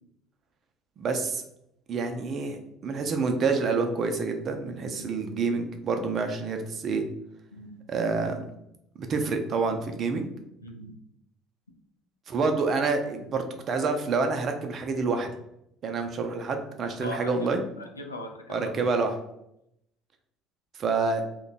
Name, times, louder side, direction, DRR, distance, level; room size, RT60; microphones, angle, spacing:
voice 1, 1.0-1.4 1.9-7.0 7.9-8.4 9.0-10.3 12.3-15.3 15.8-17.6 18.5-19.1 20.8-21.2, right 4 dB, 40° right, 6 dB, 0.5 m, -27 dB
voice 2, 10.6-10.9 17.0-18.8, left 1 dB, 85° left, 3 dB, 0.4 m, -40 dB
2.9 x 2.2 x 4.0 m, 0.79 s
figure-of-eight pair, 60°, 0 cm